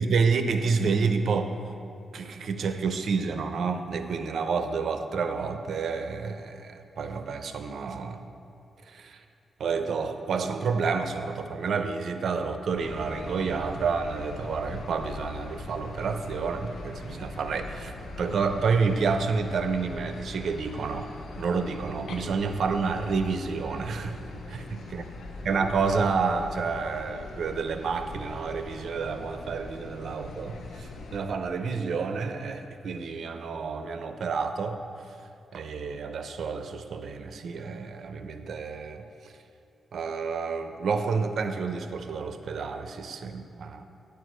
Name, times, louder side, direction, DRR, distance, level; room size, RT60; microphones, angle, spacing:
voice 1, 0.0-1.6 2.1-8.3 8.9-9.2 9.6-17.9 18.2-21.1 21.4-24.2 24.5-24.6 24.9-25.0 25.5-34.8 35.5-39.0 39.9-43.8, right 5 dB, 70° right, 8 dB, 0.6 m, -29 dB
sound 1, 12.8-31.2, left 2 dB, 80° left, 0.8 m, -41 dB
9.9 x 4.7 x 7.9 m, 2.6 s
cardioid pair, 110°, 0 cm